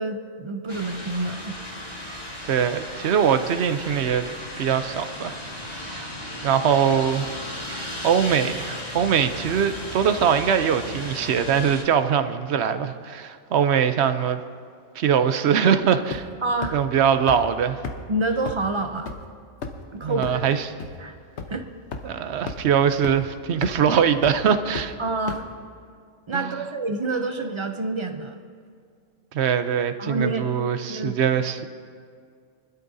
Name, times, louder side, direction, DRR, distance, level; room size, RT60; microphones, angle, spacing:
voice 1, 0.0-1.6 16.4-16.8 18.1-19.1 19.9-20.4 21.0-21.1 21.5-21.7 25.0-25.4 26.3-28.4 30.0-30.5 30.9-31.2, right 2 dB, 40° right, 6 dB, 0.4 m, -27 dB
sound 1, 0.7-11.8, left 1 dB, 30° left, 2.3 m, -35 dB
voice 2, 2.5-4.3 4.6-5.4 5.8-6.1 6.4-7.3 7.6-14.4 15.0-16.3 16.7-17.8 20.0-20.7 22.0-25.0 26.3-26.6 29.3-31.7, right 8 dB, 65° right, 10 dB, 0.9 m, -22 dB
sound 2, 16.1-16.4 16.6-16.7 17.3-17.4 17.8-17.9 18.5-18.6 19.1-19.2 19.6-19.8 20.2-20.3 20.8-20.9 21.4-21.5 21.9-22.0 22.5-22.6 23.0-23.1 23.6-23.8 24.2-24.3 24.7-24.8 25.3-25.4, left 4 dB, 60° left, 1.2 m, -31 dB
24.0 x 12.0 x 2.7 m, 2.2 s
omnidirectional pair, 1.3 m